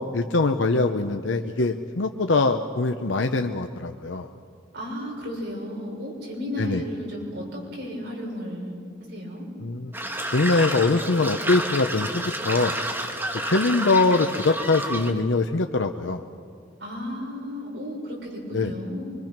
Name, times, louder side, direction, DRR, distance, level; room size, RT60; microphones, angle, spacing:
voice 1, 0.0-4.3 6.6-6.8 9.6-9.9 10.3-12.8 13.4-16.2 18.5-18.7, left 3 dB, 85° left, 6 dB, 0.8 m, -23 dB
voice 2, 4.7-8.8 9.0-9.4 16.8-19.1, left 1 dB, 65° right, -2 dB, 6.3 m, -33 dB
sound 1, 9.9-15.1, right 1 dB, 10° right, 1.5 m, -30 dB
24.5 x 24.5 x 6.0 m, 2.3 s
head